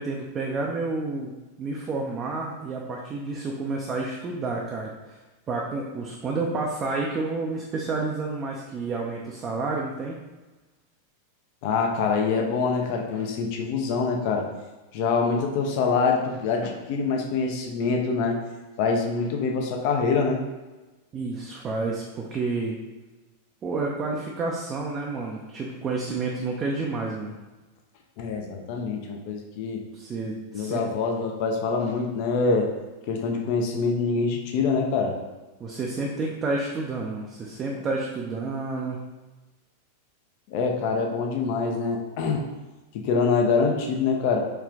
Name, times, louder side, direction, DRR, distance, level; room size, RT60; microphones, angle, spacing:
voice 1, 0.0-1.3 1.6-5.2 5.5-10.2 21.1-22.8 23.6-27.3 29.9-30.8 35.6-39.0, right 3 dB, 25° right, -1 dB, 0.5 m, -30 dB
voice 2, 11.6-14.5 14.9-18.4 18.8-20.4 28.2-29.8 30.5-32.7 33.1-35.2 40.5-42.4 42.9-44.4, left 4 dB, 45° left, 2 dB, 0.6 m, -25 dB
4.5 x 3.2 x 2.4 m, 1.2 s
figure-of-eight pair, 90°, 0 cm